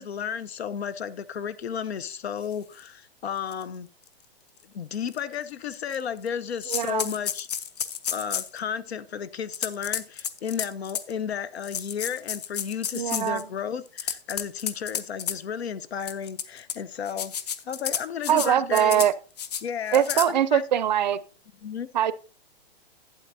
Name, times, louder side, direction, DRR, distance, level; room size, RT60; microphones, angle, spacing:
voice 1, 0.0-3.9 4.7-7.5 8.1-17.3 17.6-19.1 19.6-20.6 21.6-21.9, left 7 dB, 90° left, 16 dB, 0.8 m, -33 dB
sound 1, 2.8-2.9 3.5-3.6 4.1-4.2 5.1-5.2 5.7-6.3 6.6-8.6 9.5-11.1 11.6-13.4 13.9-15.4 16.0-16.7 17.1-18.5 18.7-19.1 19.4-19.6 19.9-20.3, left 8 dB, 40° left, 0.6 m, -31 dB
voice 2, 6.7-7.0 12.9-13.4 18.3-19.1 19.9-21.2 21.9-22.1, right 10 dB, 45° right, 17 dB, 0.5 m, -22 dB
11.5 x 8.6 x 2.7 m, 0.35 s
hypercardioid pair, 165°, 31 cm